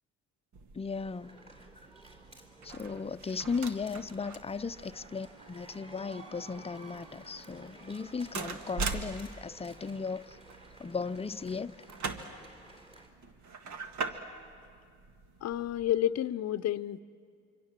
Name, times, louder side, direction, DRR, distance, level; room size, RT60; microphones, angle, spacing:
sound 1, 0.5-16.0, right 4 dB, 70° right, 1.7 m, -43 dB
voice 1, 0.7-1.4 2.6-10.4 10.8-11.7 13.7-13.8, left 5 dB, 20° left, 12 dB, 0.6 m, -36 dB
sound 2, 0.9-13.1, right 2 dB, 20° right, 3.7 m, -54 dB
voice 2, 15.4-17.0, left 12 dB, 60° left, 12 dB, 0.7 m, -30 dB
26.0 x 24.5 x 7.4 m, 2.2 s
cardioid pair, 90°, 30 cm